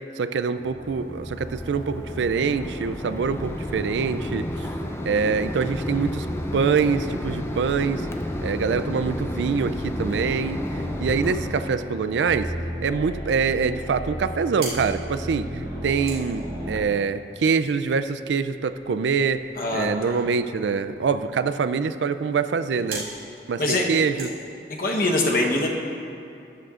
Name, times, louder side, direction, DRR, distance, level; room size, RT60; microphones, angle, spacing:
voice 1, 0.2-4.7 5.1-6.3 6.5-8.1 8.4-12.5 12.8-19.5 19.7-23.1 23.5-24.3, right 5 dB, 85° right, 12 dB, 0.4 m, -25 dB
sound 1, 0.5-16.8, equal, 25° right, 2.0 m, -35 dB
Mechanisms, 0.8-11.8, left 1 dB, 15° left, 0.3 m, -33 dB
sound 2, 14.6-25.1, right 2 dB, 55° right, 2.4 m, -43 dB
voice 2, 19.6-20.2 23.6-23.9 24.7-25.7, left 2 dB, 50° left, 0 dB, 1.0 m, -23 dB
14.0 x 10.0 x 2.5 m, 2.6 s
head